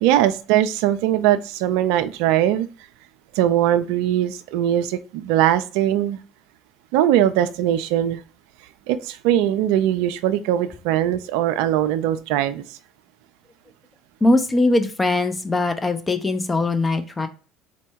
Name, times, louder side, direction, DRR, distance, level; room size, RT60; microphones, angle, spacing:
voice 1, 0.0-2.7 3.4-6.2 6.9-8.2 8.9-12.8, right 12 dB, 75° right, 11 dB, 0.4 m, -20 dB
voice 2, 14.2-17.3, left 2 dB, 20° left, 8 dB, 0.7 m, -21 dB
4.2 x 2.2 x 4.5 m, 0.36 s
supercardioid pair, 80°, 0 cm